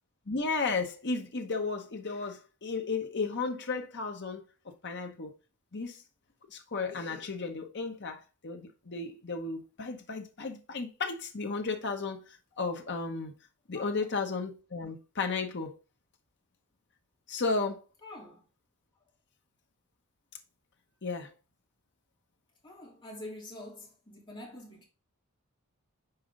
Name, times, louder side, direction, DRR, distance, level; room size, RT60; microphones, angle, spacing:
voice 1, 0.3-5.3 5.7-6.0 6.5-13.3 13.7-15.7 17.3-17.8 21.0-21.3, left 4 dB, 55° left, 1.0 m, -34 dB
voice 2, 18.0-18.4 22.6-24.8, left 1 dB, 25° left, 3.1 m, -46 dB
5.7 x 4.6 x 3.9 m
head